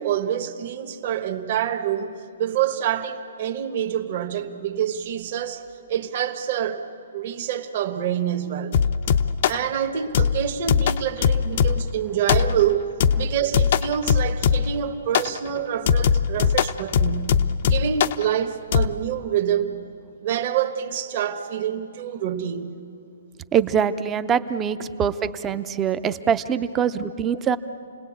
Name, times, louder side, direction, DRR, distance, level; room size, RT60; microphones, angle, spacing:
voice 1, 0.0-5.6 5.9-6.8 7.1-8.8 9.4-12.9 13.1-19.8 20.2-22.7, right 9 dB, 40° right, 1.3 m, -26 dB
sound 1, 8.7-9.7 10.1-11.9 12.3-12.7 13.0-14.8 15.1-15.4 15.9-18.2 18.7-18.9, left 7 dB, 45° left, 0.6 m, -21 dB
voice 2, 23.5-25.1 25.4-27.6, right 8 dB, 15° right, 0.6 m, -23 dB
29.5 x 19.5 x 8.6 m
hypercardioid pair, 165°, 0 cm